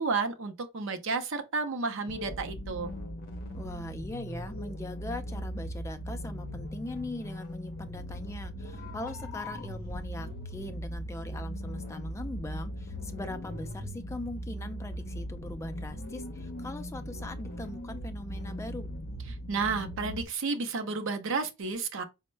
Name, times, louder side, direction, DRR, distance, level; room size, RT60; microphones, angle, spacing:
voice 1, 0.0-2.9 19.5-22.0, right 4 dB, 60° right, 0.6 m, -31 dB
sound 1, 2.1-20.3, equal, 40° left, 0.7 m, -39 dB
voice 2, 3.6-18.9, left 1 dB, 15° left, 0.3 m, -41 dB
4.2 x 2.1 x 3.1 m
head